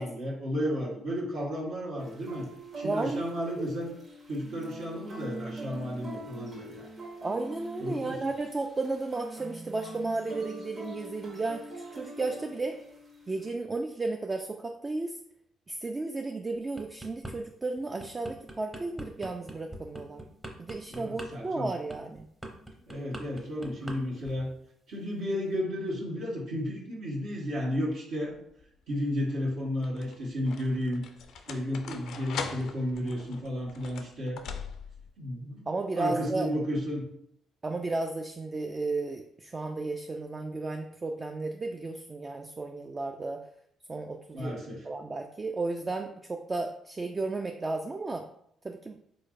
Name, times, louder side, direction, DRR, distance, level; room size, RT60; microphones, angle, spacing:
voice 1, 0.0-2.4 2.7-3.9 4.3-6.9 7.8-8.2 20.9-21.7 22.8-24.5 24.9-28.4 28.9-31.0 31.5-34.4 35.2-35.7 35.9-37.1 44.3-44.8, equal, 70° right, -5 dB, 1.2 m, -33 dB
sound 1, 2.0-13.5, right 2 dB, 45° right, 1.4 m, -44 dB
voice 2, 2.8-3.4 7.2-12.8 13.3-15.2 15.7-20.2 20.6-22.3 35.7-36.5 37.6-43.4 43.9-44.6 44.8-48.3 48.6-49.0, right 3 dB, 30° right, 4 dB, 0.3 m, -33 dB
sound 2, 16.5-17.3 17.8-24.0 24.2-24.5, right 1 dB, 15° right, 0.8 m, -42 dB
sound 3, 28.3-28.7 29.6-35.1, left 6 dB, 65° left, 0.4 m, -41 dB
3.8 x 3.1 x 2.5 m, 0.70 s
hypercardioid pair, 45°, 0 cm